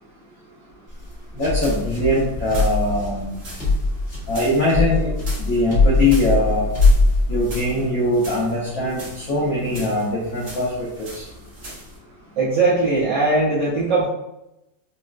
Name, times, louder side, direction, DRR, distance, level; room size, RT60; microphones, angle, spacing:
sound 1, 0.9-7.8, left 2 dB, 40° left, 1.1 m, -21 dB
voice 1, 1.4-3.3 4.3-5.1 5.4-6.7 7.3-11.2, left 1 dB, 65° left, -6 dB, 0.8 m, -22 dB
sound 2, 1.4-12.0, equal, 45° right, 1.0 m, -40 dB
voice 2, 12.4-14.1, right 3 dB, 65° right, -10 dB, 1.3 m, -19 dB
4.1 x 2.1 x 2.4 m, 0.88 s
omnidirectional pair, 2.4 m